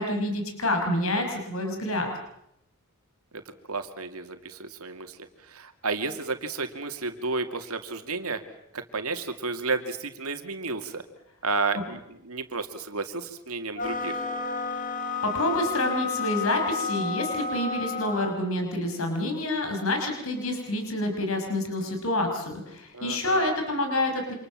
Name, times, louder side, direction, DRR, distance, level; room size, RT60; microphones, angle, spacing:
voice 1, 0.0-2.1 15.2-24.3, left 1 dB, 70° left, 4 dB, 5.8 m, -28 dB
voice 2, 3.7-5.2 5.5-8.4 8.7-11.0 11.4-12.0 12.2-14.2 22.9-23.5, right 3 dB, 85° right, 8 dB, 2.4 m, -32 dB
sound 1, 13.7-18.4, left 4 dB, 35° left, 2.2 m, -31 dB
28.5 x 26.5 x 7.5 m, 0.77 s
head